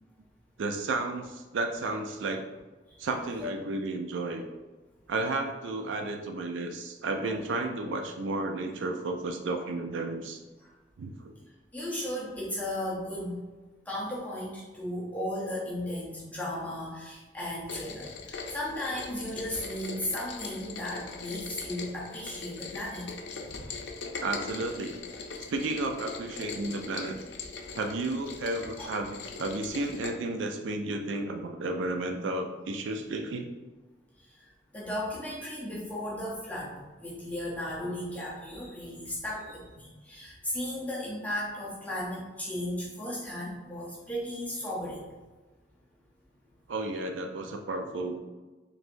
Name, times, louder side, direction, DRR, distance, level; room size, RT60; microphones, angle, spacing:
voice 1, 0.6-2.4 3.0-4.4 5.1-10.4 11.0-11.3 24.2-25.0 25.5-27.2 27.7-33.5 46.7-48.1, right 2 dB, 90° right, 4 dB, 0.4 m, -32 dB
voice 2, 11.7-13.4 13.9-23.1 28.8-28.9 34.3-45.0, left 1 dB, 10° left, -6 dB, 0.7 m, -35 dB
Rain, 17.7-30.1, left 4 dB, 70° left, 0.5 m, -41 dB
4.4 x 3.3 x 2.5 m, 1.2 s
head